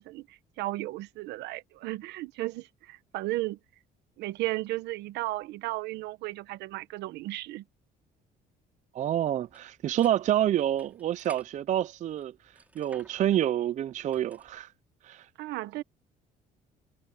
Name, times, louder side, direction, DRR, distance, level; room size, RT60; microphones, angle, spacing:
voice 1, 0.0-3.6 4.2-7.6 15.4-15.8, right 18 dB, 85° right, 1.2 m, -34 dB
voice 2, 8.9-12.3 12.8-14.7 15.0-15.3, right 11 dB, 45° right, 0.4 m, -28 dB
sound 1, 9.4-14.6, right 1 dB, 10° right, 4.4 m, -57 dB
cardioid pair, 110°, 17 cm